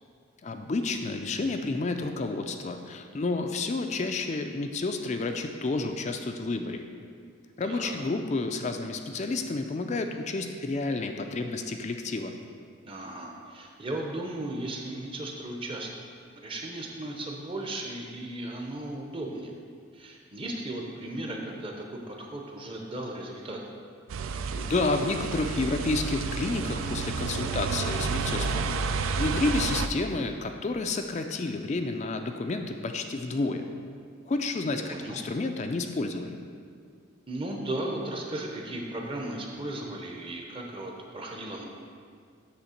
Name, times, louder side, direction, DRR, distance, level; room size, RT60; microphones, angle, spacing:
voice 1, 0.4-6.8 7.6-12.4 24.5-33.7 34.3-36.4, left 3 dB, 30° left, 6 dB, 0.3 m, -30 dB
voice 2, 7.6-8.0 12.8-15.9 16.4-19.5 19.9-23.6 34.8-35.2 37.3-41.6, right 1 dB, 25° right, 1 dB, 0.7 m, -36 dB
sound 1, 24.1-29.9, right 4 dB, 70° right, 0.3 m, -30 dB
8.1 x 3.4 x 6.4 m, 2.1 s
head